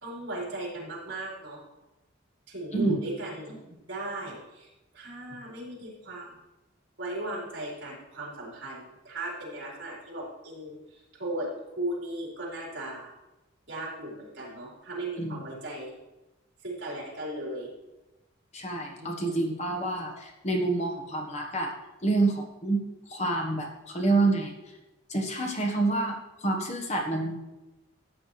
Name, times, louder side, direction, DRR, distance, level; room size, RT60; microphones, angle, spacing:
voice 1, 0.0-1.6 2.5-6.4 7.0-11.5 11.8-13.1 13.7-15.9 16.6-17.7 19.0-19.4 19.7-19.8, right 1 dB, 60° right, -4 dB, 4.4 m, -37 dB
voice 2, 2.7-3.0 15.2-15.4 18.5-21.7 22.0-24.5 25.1-27.4, right 2 dB, 35° left, 1 dB, 1.3 m, -28 dB
14.0 x 8.8 x 3.2 m, 1.0 s
head